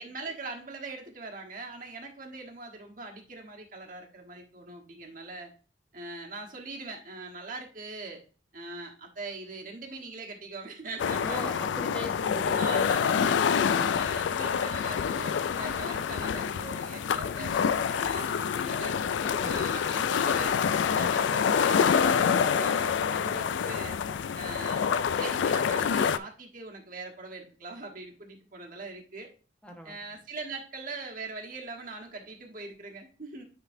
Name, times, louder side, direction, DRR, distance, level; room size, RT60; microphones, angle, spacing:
voice 1, 0.0-5.5 5.9-8.2 8.5-11.4 12.5-13.5 13.9-19.0 19.4-20.6 20.9-24.0 24.3-24.9 25.1-29.3 29.8-33.4, right 3 dB, 50° right, 1 dB, 1.4 m, -41 dB
sound 1, 11.0-26.2, left 7 dB, 80° left, 0.3 m, -27 dB
voice 2, 11.2-12.9 13.2-13.9 19.2-19.6 20.9-21.1 23.2-23.4 29.6-30.0, equal, 5° left, 2 dB, 1.0 m, -40 dB
10.0 x 3.9 x 2.7 m, 0.37 s
head